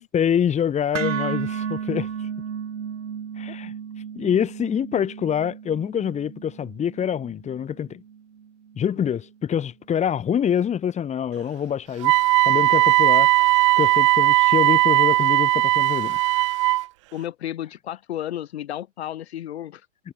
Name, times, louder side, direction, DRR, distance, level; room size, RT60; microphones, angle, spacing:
voice 1, 0.1-2.3 3.4-3.7 4.2-8.0 8.8-12.1 12.5-16.2, left 8 dB, 15° left, 4.3 m, -25 dB
sound 1, 0.9-9.1, right 7 dB, 70° right, 2.3 m, -33 dB
voice 2, 8.8-9.1 17.1-19.9, left 12 dB, 55° left, 5.2 m, -33 dB
Wind instrument woodwind instrument, 12.0-16.8, right 19 dB, 25° right, 0.4 m, -18 dB
figure-of-eight pair, 110°, 38 cm